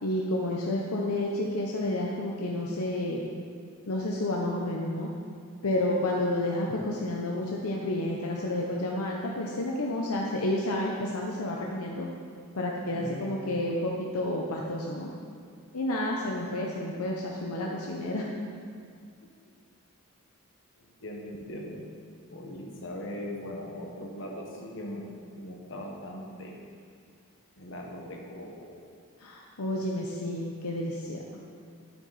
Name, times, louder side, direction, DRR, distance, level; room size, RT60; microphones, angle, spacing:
voice 1, 0.0-3.2 3.9-5.1 5.6-12.1 12.5-15.1 15.7-18.2 29.2-31.2, left 1 dB, 80° left, -1 dB, 0.8 m, -30 dB
voice 2, 12.9-13.5 20.8-21.8 22.3-25.1 25.4-26.6 27.6-28.8, left 1 dB, 55° left, 0 dB, 1.4 m, -40 dB
9.2 x 8.2 x 4.1 m, 2.3 s
head